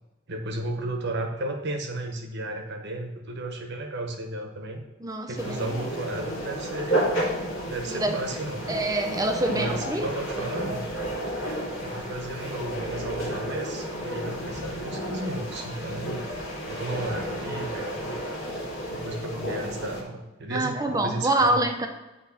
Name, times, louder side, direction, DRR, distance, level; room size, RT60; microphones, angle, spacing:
voice 1, 0.3-4.8 5.3-7.0 7.7-8.7 9.5-10.9 11.8-16.3 16.7-18.2 18.9-21.7, right 2 dB, 55° right, 4 dB, 1.0 m, -34 dB
voice 2, 5.0-5.9 7.9-8.2 8.7-10.1 20.5-21.9, right 1 dB, 20° right, 5 dB, 0.7 m, -26 dB
sound 1, 5.4-20.0, equal, 80° left, 2.0 m, -32 dB
8.4 x 3.1 x 5.8 m, 1.1 s
head